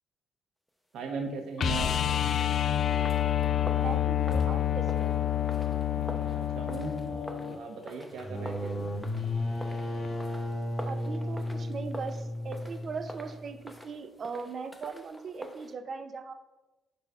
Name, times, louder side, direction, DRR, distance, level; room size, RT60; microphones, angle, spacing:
voice 1, 0.9-1.9 5.9-8.9, right 4 dB, 75° right, 4 dB, 1.0 m, -38 dB
sound 1, 1.6-7.6 10.0-10.1, left 10 dB, 60° left, 0.4 m, -28 dB
sound 2, 2.3-15.7, equal, 5° left, 0.7 m, -47 dB
voice 2, 3.8-5.2 10.9-16.3, right 5 dB, 50° right, 9 dB, 0.5 m, -39 dB
sound 3, 8.1-13.7, left 1 dB, 30° left, 1.1 m, -34 dB
5.3 x 4.1 x 4.7 m, 1.1 s
cardioid pair, 90°, 0 cm